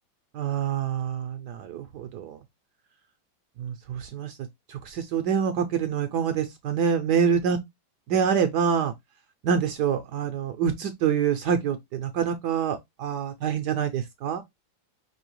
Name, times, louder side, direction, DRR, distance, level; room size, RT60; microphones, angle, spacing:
voice 1, 0.3-2.4 3.6-4.4 4.7-7.6 8.1-8.9 9.4-14.4, right 7 dB, 75° right, 1.0 m, -26 dB
5.4 x 2.7 x 3.1 m
omnidirectional pair, 2.1 m